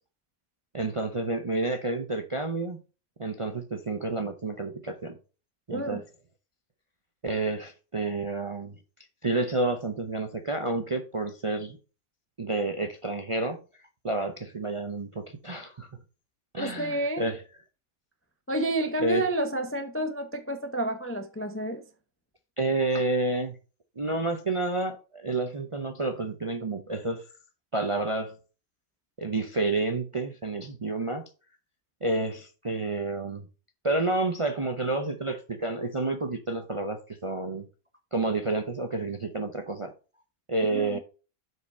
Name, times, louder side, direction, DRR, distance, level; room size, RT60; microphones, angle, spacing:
voice 1, 0.7-2.8 3.2-5.2 5.7-6.0 7.2-8.8 9.2-11.8 12.4-13.6 14.0-15.9 16.5-17.4 19.0-19.3 22.6-23.5 24.0-27.2 27.7-28.3 29.2-31.2 32.0-33.5 33.8-37.7 38.1-39.9 40.5-41.0, right 2 dB, 35° right, 0.5 m, -29 dB
voice 2, 5.7-6.0 16.6-17.3 18.5-21.8 40.7-41.0, right 1 dB, 15° left, 0.4 m, -30 dB
7.0 x 5.0 x 4.2 m
omnidirectional pair, 1.5 m